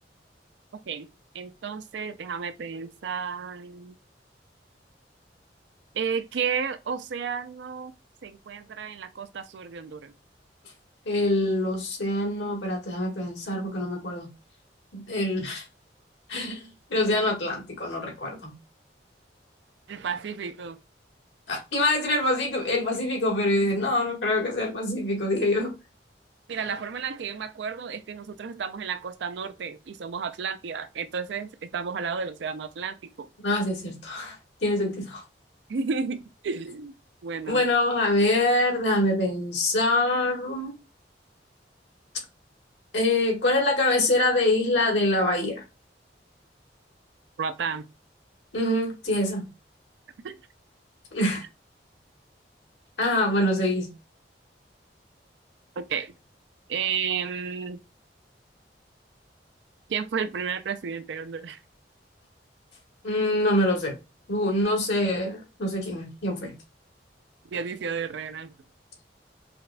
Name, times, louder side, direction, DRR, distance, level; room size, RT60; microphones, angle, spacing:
voice 1, 0.7-1.1 1.3-3.9 5.9-7.9 8.2-10.1 19.9-20.8 26.5-33.3 35.7-36.9 37.2-37.6 47.4-47.9 50.2-50.4 55.8-56.1 56.7-57.8 59.9-61.6 67.5-68.5, right 6 dB, 80° right, 0.4 m, -32 dB
voice 2, 11.1-14.3 14.9-15.6 16.3-16.6 16.9-18.5 21.5-25.7 33.4-35.2 37.5-40.7 42.9-45.6 48.5-49.5 51.1-51.4 53.0-53.9 63.0-63.9 64.3-66.5, left 1 dB, 85° left, 1.6 m, -25 dB
5.0 x 2.2 x 2.4 m
head